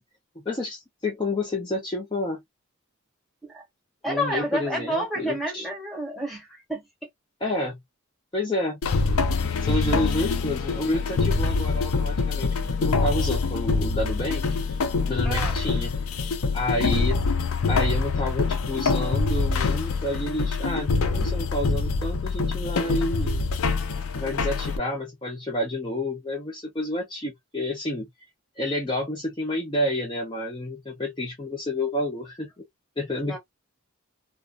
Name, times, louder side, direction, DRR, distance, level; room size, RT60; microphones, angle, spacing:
voice 1, 0.4-2.4 4.0-5.7 7.4-7.8 8.3-8.8 9.6-12.6 12.8-14.4 15.1-15.9 16.5-17.2 17.7-23.5 24.1-28.1 28.6-32.6 33.0-33.4, left 1 dB, 20° left, 0.6 m, -29 dB
voice 2, 4.0-6.8 15.2-15.6 33.3-33.4, equal, ahead, 1.0 m, -30 dB
sound 1, 8.8-24.8, left 4 dB, 75° left, 0.5 m, -25 dB
2.4 x 2.1 x 2.4 m
head